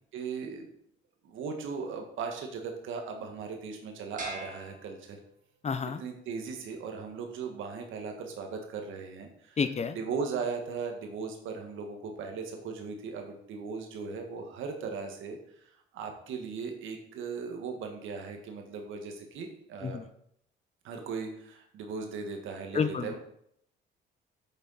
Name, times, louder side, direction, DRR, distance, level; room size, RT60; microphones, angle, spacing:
voice 1, 0.1-0.7 1.2-5.2 6.0-9.6 9.9-15.6 15.9-20.0 20.8-23.2, right 5 dB, 85° right, 3 dB, 1.6 m, -38 dB
sound 1, 4.2-5.7, right 2 dB, 40° right, 2.2 m, -44 dB
voice 2, 5.6-6.0 9.6-10.0 19.8-20.1 22.7-23.2, left 5 dB, 35° left, 12 dB, 0.8 m, -30 dB
8.2 x 7.1 x 4.1 m, 0.70 s
cardioid pair, 90°, 20 cm